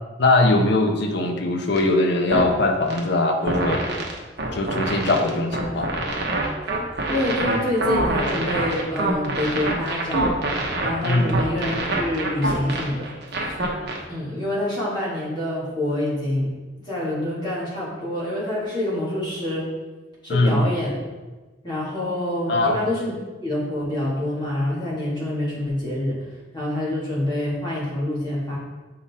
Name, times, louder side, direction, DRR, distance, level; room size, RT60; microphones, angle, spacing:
voice 1, 0.2-3.8 4.5-5.9 11.0-11.3 20.3-20.7 22.5-22.8, left 2 dB, 65° left, 3 dB, 0.8 m, -21 dB
sound 1, 1.8-1.9 2.3-2.5 2.9-3.0 3.5-14.0, right 2 dB, 60° right, 1.0 m, -25 dB
voice 2, 7.1-10.3 10.8-13.1 13.4-13.5 14.1-16.5 16.8-19.7 20.2-21.0 21.6-23.1 23.4-26.2 26.5-28.6, left 1 dB, 25° left, -8 dB, 1.9 m, -26 dB
6.9 x 3.8 x 4.2 m, 1.2 s
head